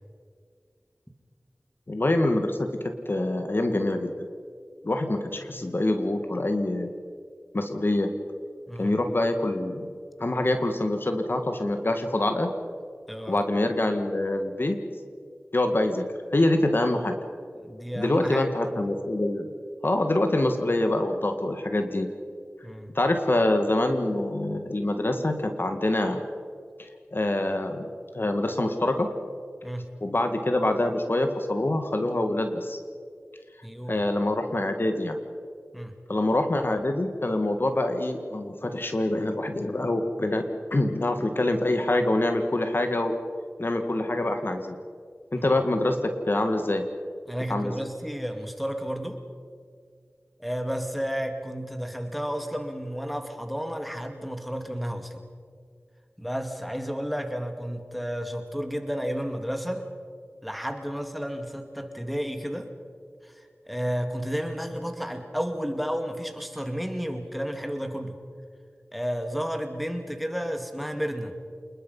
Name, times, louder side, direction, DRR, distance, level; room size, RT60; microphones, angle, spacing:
voice 1, 1.9-2.7 3.1-4.1 4.8-6.9 7.5-8.1 8.8-9.9 10.2-12.5 13.3-14.8 15.5-17.2 17.9-19.5 19.8-22.1 22.9-26.2 26.8-27.9 28.1-29.1 30.0-32.8 33.9-35.2 36.1-40.5 40.7-43.1 43.6-44.8 45.3-46.9 47.5-47.7, left 1 dB, 50° left, 6 dB, 1.9 m, -25 dB
voice 2, 8.7-9.0 13.1-13.4 17.6-18.7 22.6-22.9 29.6-29.8 33.6-34.0 35.7-35.9 45.3-45.5 47.3-49.2 50.4-55.2 56.2-59.8 60.4-62.7 63.2-68.2 68.9-71.3, equal, ahead, 5 dB, 2.3 m, -32 dB
28.5 x 21.0 x 5.6 m, 2.1 s
wide cardioid pair, 65°, 5 cm